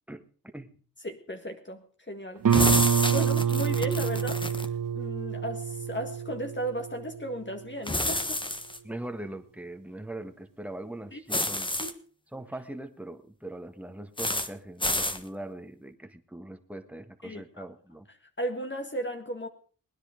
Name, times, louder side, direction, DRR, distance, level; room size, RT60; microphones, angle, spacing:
voice 1, 1.0-2.4 3.1-4.5 4.9-8.4 11.1-11.2 11.8-12.0 17.2-17.7 18.4-19.5, equal, 35° left, 5 dB, 1.7 m, -35 dB
Guitar, 2.4-7.9, right 8 dB, 70° right, 1.1 m, -27 dB
sound 1, 2.5-4.7 7.9-8.8 11.3-11.9 14.2-14.5 14.8-15.2, left 1 dB, 15° left, 1.3 m, -29 dB
voice 2, 8.8-11.8 12.3-18.1, right 1 dB, 5° right, 7 dB, 1.6 m, -41 dB
19.5 x 10.0 x 5.1 m, 0.43 s
cardioid pair, 55°, 34 cm